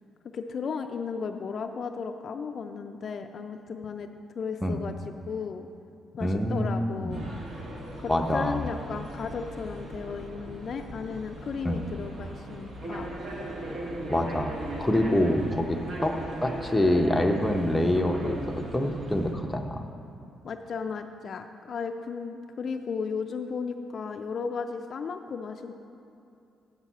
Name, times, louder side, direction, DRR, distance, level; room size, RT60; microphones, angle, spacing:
voice 1, 0.3-4.1 4.3-5.0 5.3-5.7 6.1-7.3 8.0-13.1 20.4-25.7, left 5 dB, 50° left, 6 dB, 0.4 m, -35 dB
voice 2, 6.2-7.2 8.1-8.6 11.6-11.8 14.1-16.1 16.4-19.8, left 1 dB, 10° left, 3 dB, 0.7 m, -26 dB
sound 1, 7.1-19.3, right 1 dB, 55° right, 1.5 m, -38 dB
7.4 x 5.6 x 7.2 m, 2.7 s
cardioid pair, 90°, 0 cm